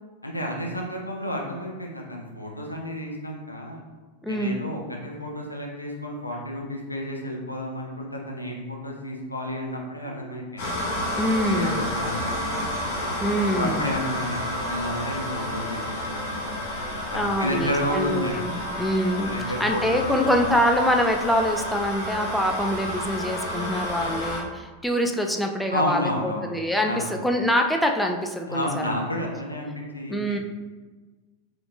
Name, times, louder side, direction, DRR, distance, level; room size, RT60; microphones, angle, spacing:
voice 1, 0.2-3.8 4.3-10.7 11.5-12.7 13.5-15.8 16.1-16.4 17.1-18.6 19.0-20.5 25.7-26.5 26.8-27.2 28.5-30.4, left 1 dB, 85° left, 0 dB, 0.7 m, -31 dB
voice 2, 4.2-4.6 10.2-10.3 11.2-11.9 13.2-14.0 17.1-28.9 30.1-30.4, equal, ahead, 2 dB, 0.3 m, -25 dB
sound 1, 10.6-24.4, left 1 dB, 50° left, 1.1 m, -30 dB
5.0 x 2.9 x 2.4 m, 1.3 s
figure-of-eight pair, 90°, 0 cm